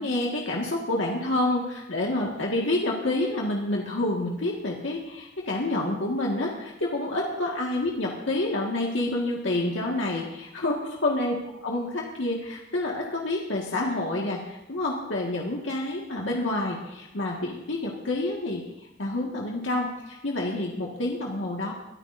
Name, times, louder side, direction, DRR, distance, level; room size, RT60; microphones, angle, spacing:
voice 1, 0.0-11.3 11.6-18.6 19.0-21.7, left 2 dB, 90° left, -2 dB, 1.8 m, -28 dB
23.0 x 13.5 x 2.6 m, 0.97 s
head